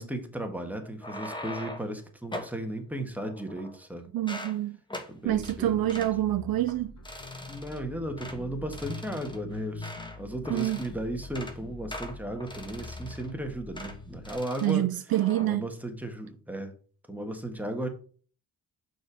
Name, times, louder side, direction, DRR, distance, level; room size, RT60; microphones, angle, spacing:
voice 1, 0.0-4.1 5.1-6.1 7.4-14.9 15.4-16.7 17.1-17.9, right 1 dB, 5° right, 1.6 m, -35 dB
sound 1, 0.8-1.9 2.3-2.6 3.2-3.9 4.2-4.6 4.9-5.1 5.4-5.6 5.9-6.1 6.6-6.8 7.1-7.8 8.2-8.4 8.7-10.2 10.5-10.9 11.2-11.6 11.9-13.3 13.8-14.0 14.3-14.8 15.1-15.5, left 1 dB, 10° left, 1.4 m, -41 dB
voice 2, 4.1-4.8 5.2-6.9 10.5-10.8 14.6-15.7, right 14 dB, 65° right, 0.5 m, -27 dB
sound 2, 5.3-14.4, left 3 dB, 45° left, 1.5 m, -44 dB
6.4 x 4.6 x 4.8 m
cardioid pair, 75°, 38 cm